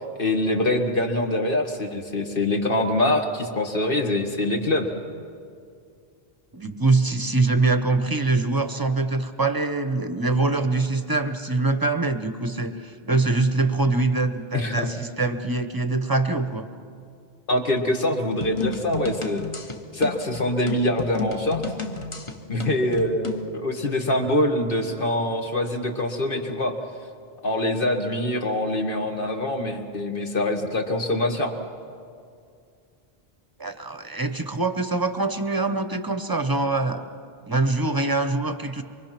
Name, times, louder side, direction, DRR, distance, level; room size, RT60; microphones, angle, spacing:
voice 1, 0.2-4.9 14.5-14.8 17.5-19.5 19.9-21.6 22.5-26.7 27.4-31.5, left 1 dB, 55° left, 3 dB, 1.9 m, -24 dB
voice 2, 6.5-16.7 33.6-37.1 37.5-38.8, right 3 dB, 20° right, 9 dB, 0.8 m, -24 dB
sound 1, 18.4-23.5, left 4 dB, 30° left, 1.0 m, -32 dB
24.0 x 23.5 x 5.9 m, 2.4 s
omnidirectional pair, 1.1 m